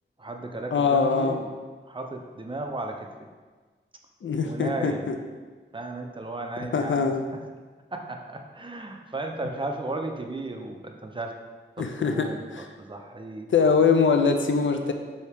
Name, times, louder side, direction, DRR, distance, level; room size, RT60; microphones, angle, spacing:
voice 1, 0.2-3.3 4.4-5.1 5.7-7.4 7.9-11.4 11.8-12.4 12.8-13.5, right 2 dB, 25° right, 3 dB, 0.5 m, -35 dB
voice 2, 0.7-1.4 4.2-5.2 6.7-7.2 11.8-12.3 13.5-14.9, left 5 dB, 65° left, 5 dB, 0.4 m, -22 dB
4.4 x 2.7 x 3.4 m, 1.4 s
wide cardioid pair, 45°, 21 cm